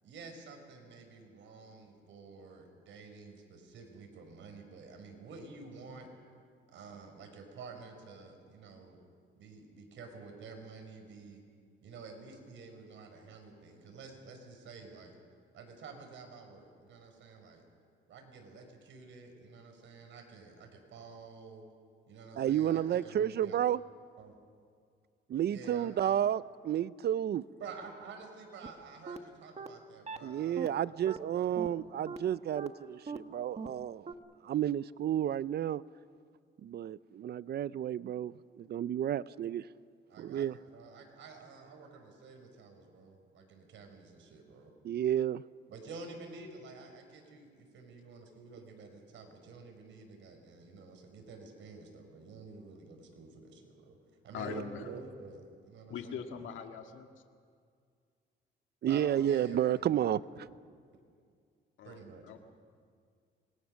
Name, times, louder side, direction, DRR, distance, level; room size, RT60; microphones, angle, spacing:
voice 1, 0.0-6.1 6.7-9.0 9.3-11.4 11.8-15.1 15.5-17.6 18.1-21.6 22.1-23.6 24.2-24.3 25.5-26.3 27.6-31.6 40.1-44.7 45.7-54.0 54.2-56.5 58.9-60.0 61.8-62.4, right 4 dB, 75° right, 4 dB, 4.8 m, -50 dB
voice 2, 22.4-23.8 25.3-27.4 30.2-34.1 34.4-35.8 36.6-39.6 40.2-40.6 44.8-45.4 54.5-54.6 58.8-60.2, right 10 dB, 55° right, 18 dB, 0.5 m, -31 dB
sound 1, 28.6-28.7 29.1-29.2 29.6-29.7 30.1-30.2 30.6-30.7 31.1-31.2 31.6-31.7 32.1-32.2 32.6-32.7 33.1-33.2 33.6-33.7 34.1-34.2, right 5 dB, 35° right, 1.3 m, -40 dB
voice 3, 54.3-54.8 55.9-57.0 61.8-62.0 62.3-62.4, left 7 dB, 80° left, 5 dB, 1.9 m, -41 dB
26.5 x 21.0 x 6.4 m, 2.2 s
cardioid pair, 90°, 20 cm